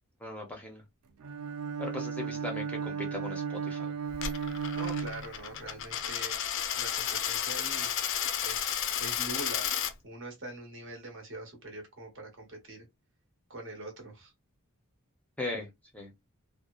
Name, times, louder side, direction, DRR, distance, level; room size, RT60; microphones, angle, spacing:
voice 1, 0.2-0.8 1.8-3.9 15.4-15.7 15.9-16.1, left 2 dB, 5° left, 0.5 m, -38 dB
Bowed string instrument, 1.2-5.8, right 6 dB, 90° right, 0.4 m, -35 dB
Coin (dropping), 4.1-9.9, left 9 dB, 60° left, 0.4 m, -32 dB
voice 2, 4.7-6.4 6.8-7.9 8.4-12.9 13.5-14.3, right 2 dB, 60° right, 1.0 m, -43 dB
2.7 x 2.0 x 2.3 m
head